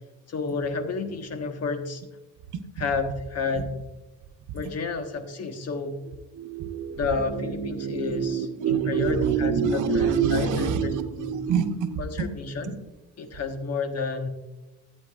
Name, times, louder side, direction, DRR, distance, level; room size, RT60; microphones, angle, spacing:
voice 1, 0.3-2.0 2.8-3.7 4.5-6.0 7.0-11.4 12.0-12.8 13.2-14.3, left 4 dB, 55° left, 7 dB, 1.4 m, -31 dB
voice 2, 6.4-7.0 7.4-12.3 12.7-12.8, right 6 dB, 80° right, 5 dB, 0.9 m, -26 dB
14.0 x 9.0 x 2.5 m, 1.0 s
cardioid pair, 90°, 30 cm